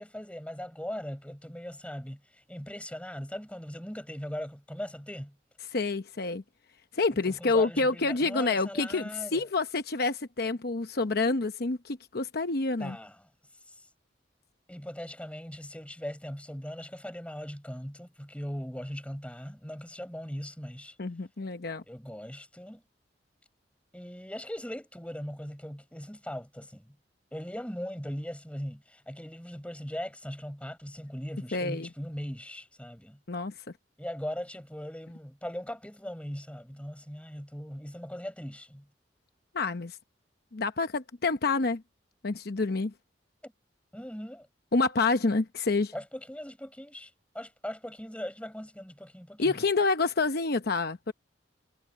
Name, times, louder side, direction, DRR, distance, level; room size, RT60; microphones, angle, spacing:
voice 1, 0.0-5.4 7.1-9.4 12.8-13.2 13.7-13.8 14.7-21.0 21.8-22.8 23.9-27.0 27.3-33.2 34.0-38.9 43.4-43.5 43.9-44.5 45.9-49.6, equal, 5° left, 5.1 m, -39 dB
voice 2, 5.7-6.4 6.9-13.0 21.0-21.8 31.5-31.9 33.3-33.5 39.5-40.0 40.5-41.8 42.2-42.9 44.7-45.9 49.4-51.1, left 3 dB, 60° left, 0.9 m, -28 dB
head